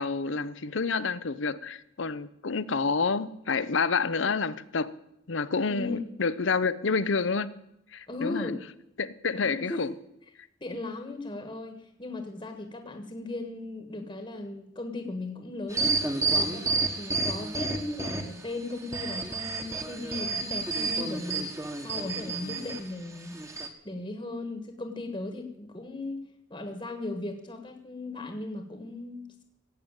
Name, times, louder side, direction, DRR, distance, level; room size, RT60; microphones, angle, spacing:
voice 1, 0.0-4.9 5.3-7.5 7.9-8.6 9.0-9.9 22.4-22.7, left 4 dB, 75° left, 15 dB, 0.8 m, -29 dB
voice 2, 5.7-6.1 8.1-8.6 9.3-9.8 10.6-16.1 16.3-23.4 23.8-26.2 26.5-29.4, left 2 dB, 25° left, 6 dB, 1.4 m, -37 dB
sound 1, 15.7-18.4 18.8-22.8 23.3-23.7, right 3 dB, 15° right, 1.3 m, -30 dB
17.0 x 8.2 x 8.9 m, 0.82 s
head